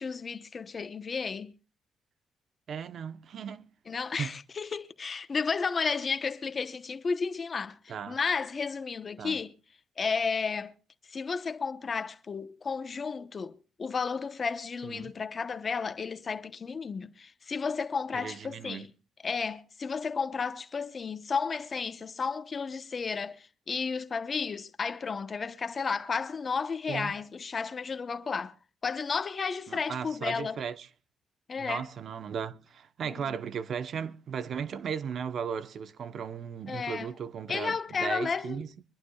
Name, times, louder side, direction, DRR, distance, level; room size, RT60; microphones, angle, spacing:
voice 1, 0.0-1.5 3.9-9.5 10.0-10.7 11.1-18.9 19.2-28.6 28.8-30.6 31.5-31.9 33.0-33.4 36.7-37.1 37.5-38.6, left 5 dB, 40° left, 0.9 m, -33 dB
voice 2, 2.7-3.7 4.2-4.3 7.9-8.2 9.2-9.4 14.8-15.1 18.1-18.9 26.9-27.1 29.7-30.9 31.6-38.7, right 7 dB, 60° right, 0.9 m, -36 dB
24.5 x 11.5 x 2.3 m
cardioid pair, 90°, 0 cm